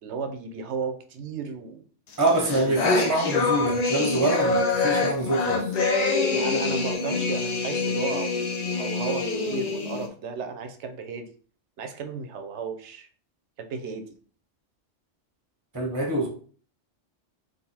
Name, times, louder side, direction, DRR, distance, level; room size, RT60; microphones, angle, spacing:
voice 1, 0.0-1.8 2.3-2.8 6.3-11.3 11.8-13.1 13.6-14.1, right 5 dB, 75° right, 0.9 m, -34 dB
sound 1, 2.2-10.1, left 3 dB, 50° left, 0.5 m, -26 dB
voice 2, 2.2-5.7 15.7-16.3, right 1 dB, 20° right, 0.8 m, -25 dB
3.8 x 2.7 x 4.2 m
omnidirectional pair, 1.3 m